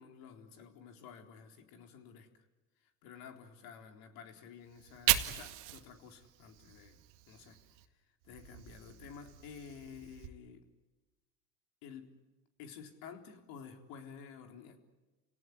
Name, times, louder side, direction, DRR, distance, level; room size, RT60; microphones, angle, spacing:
voice 1, 0.0-2.3 3.0-7.0 7.3-7.6 8.2-10.7 11.8-12.2 12.6-14.8, left 7 dB, 65° left, 5 dB, 4.0 m, -51 dB
Fire, 4.7-7.9 8.2-10.3, right 16 dB, 70° right, 2.1 m, -37 dB
30.0 x 18.0 x 9.9 m, 1.2 s
supercardioid pair, 95°, 38 cm